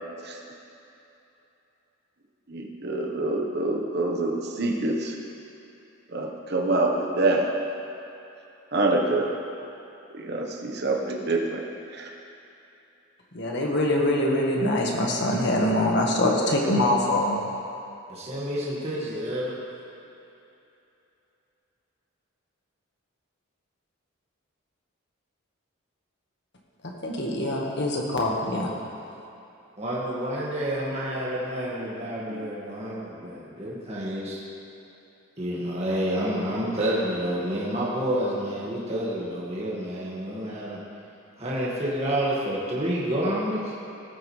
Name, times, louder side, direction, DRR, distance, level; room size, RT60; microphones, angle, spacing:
voice 1, 2.5-5.1 6.1-7.5 8.7-9.3 10.1-11.6 11.9-12.1 32.3-32.4, right 2 dB, 50° right, 1 dB, 1.2 m, -26 dB
voice 2, 13.3-17.4 27.0-28.7, left 1 dB, 55° left, -1 dB, 1.6 m, -24 dB
voice 3, 18.1-19.6 29.8-34.4 35.4-40.8 41.4-43.8, equal, 30° right, -7 dB, 2.0 m, -29 dB
18.5 x 8.8 x 3.3 m, 2.8 s
head